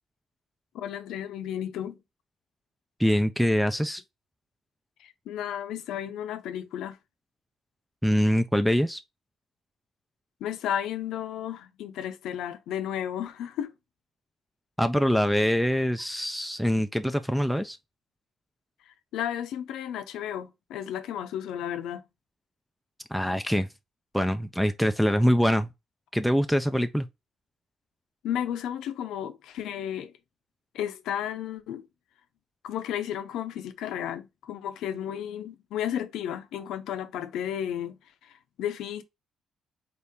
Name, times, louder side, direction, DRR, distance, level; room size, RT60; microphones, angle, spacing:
voice 1, 0.7-2.0 5.0-7.0 10.4-13.7 19.1-22.0 28.2-30.1 30.7-31.8 32.6-39.0, left 10 dB, 85° left, 0.5 m, -33 dB
voice 2, 3.0-4.0 8.0-9.0 14.8-17.8 23.1-23.7 24.1-25.7 26.1-27.1, equal, ahead, 0.3 m, -24 dB
4.1 x 2.7 x 3.5 m
cardioid pair, 90°, 0 cm